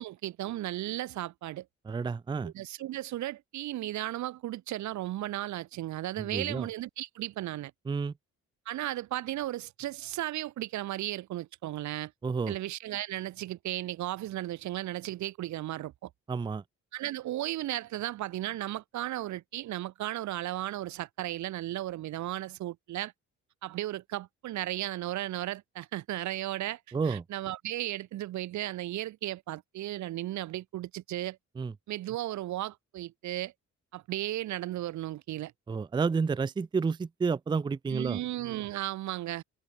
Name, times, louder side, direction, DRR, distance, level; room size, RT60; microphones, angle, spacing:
voice 1, 0.0-1.7 2.4-7.7 8.7-12.1 12.5-16.1 16.9-23.1 23.6-26.8 27.0-31.4 31.9-33.5 33.9-35.5 37.9-39.4, right 14 dB, 70° right, 0.7 m, -35 dB
voice 2, 1.9-2.5 6.2-6.7 7.9-8.1 12.2-12.6 16.3-16.6 26.9-27.2 31.6-31.7 35.7-38.2, right 5 dB, 15° right, 0.4 m, -30 dB
cardioid pair, 90°, 30 cm